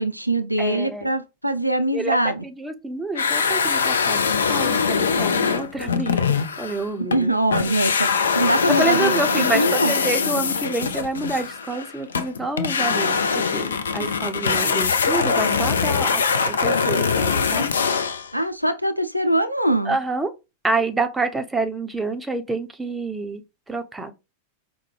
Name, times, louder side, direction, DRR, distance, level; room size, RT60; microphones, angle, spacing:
voice 1, 0.0-2.4 7.0-9.9 18.3-20.0, right 1 dB, 90° right, 0.3 m, -23 dB
voice 2, 0.6-1.1 1.9-7.3 7.7-7.8 8.7-17.7 19.9-20.3 20.6-23.4 23.7-24.1, right 2 dB, 10° right, 0.6 m, -28 dB
sound 1, 3.1-7.2 7.5-18.3, left 5 dB, 70° left, 0.3 m, -22 dB
4.7 x 2.1 x 3.2 m
figure-of-eight pair, 90°, 0 cm